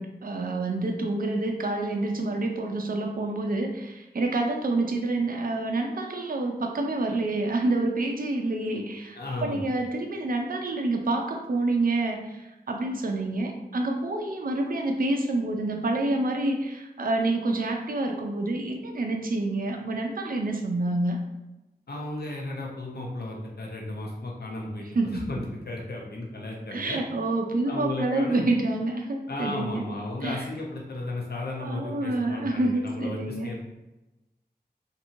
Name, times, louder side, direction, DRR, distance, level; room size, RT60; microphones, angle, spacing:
voice 1, 0.0-21.2 24.9-25.4 26.7-29.8 30.2-30.5 31.6-33.5, right 2 dB, 60° right, 3 dB, 0.4 m, -28 dB
voice 2, 9.1-9.7 21.9-24.8 25.1-27.0 27.6-28.5 29.3-33.6, left 2 dB, 75° left, -2 dB, 0.6 m, -34 dB
2.8 x 2.6 x 2.6 m, 1.0 s
wide cardioid pair, 50°, 17 cm